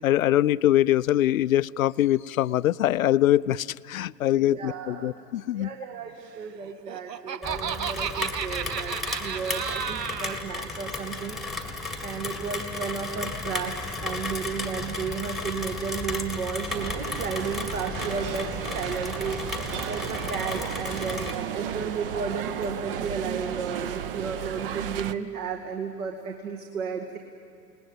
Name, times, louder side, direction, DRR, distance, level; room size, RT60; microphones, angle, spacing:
voice 1, 0.0-5.7, left 13 dB, 55° left, 18 dB, 0.5 m, -23 dB
voice 2, 4.4-5.2 5.5-11.4 12.0-19.4 19.9-27.2, right 6 dB, 55° right, 4 dB, 2.0 m, -33 dB
Laughter, 6.7-10.4, right 8 dB, 75° right, 0.9 m, -33 dB
Rain, 7.4-21.4, left 3 dB, ahead, 1.4 m, -34 dB
sound 1, 16.7-25.1, right 9 dB, 35° right, 0.7 m, -34 dB
29.0 x 19.5 x 8.0 m, 2.5 s
hypercardioid pair, 125°, 50 cm